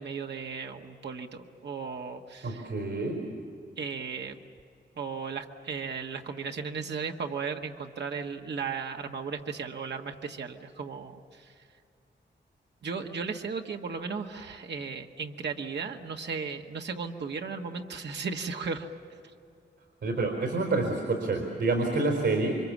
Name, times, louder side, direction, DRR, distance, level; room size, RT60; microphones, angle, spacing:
voice 1, 0.0-2.7 3.8-4.4 5.0-11.5 12.8-18.9, right 5 dB, 70° right, 3 dB, 1.5 m, -36 dB
voice 2, 2.4-3.2 20.0-22.5, right 3 dB, 90° right, 2 dB, 4.4 m, -28 dB
28.5 x 25.0 x 7.4 m, 2.4 s
wide cardioid pair, 180°, 19 cm